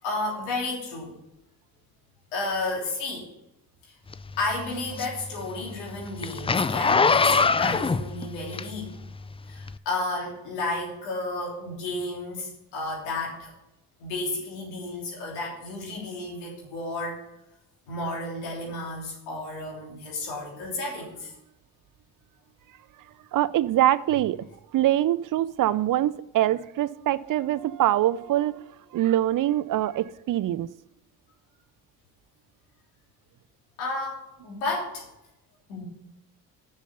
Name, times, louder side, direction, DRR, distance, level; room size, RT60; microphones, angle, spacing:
voice 1, 0.0-1.2 2.3-3.3 3.8-3.9 4.4-8.9 9.5-13.5 14.0-17.2 17.9-21.3 33.8-35.0 35.7-35.8, left 2 dB, 90° left, 3.3 m, -32 dB
Zipper (clothing), 4.1-9.1 9.6-9.7, left 4 dB, 15° left, 0.4 m, -23 dB
voice 2, 23.3-30.7, right 13 dB, 55° right, 0.5 m, -24 dB
7.1 x 6.7 x 7.0 m
hypercardioid pair, 55°, 39 cm